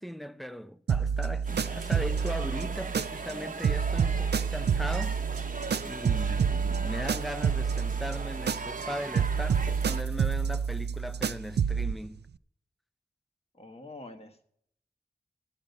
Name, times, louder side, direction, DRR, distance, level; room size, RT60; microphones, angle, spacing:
voice 1, 0.0-5.2 5.8-12.2, equal, ahead, 0.5 m, -38 dB
sound 1, 0.9-3.4 3.6-8.9 9.2-12.0, right 6 dB, 85° right, 0.4 m, -29 dB
sound 2, 1.4-10.0, right 4 dB, 55° right, 0.9 m, -39 dB
voice 2, 13.5-14.4, left 2 dB, 35° left, 1.5 m, -46 dB
13.5 x 8.9 x 5.3 m
wide cardioid pair, 70°, 17 cm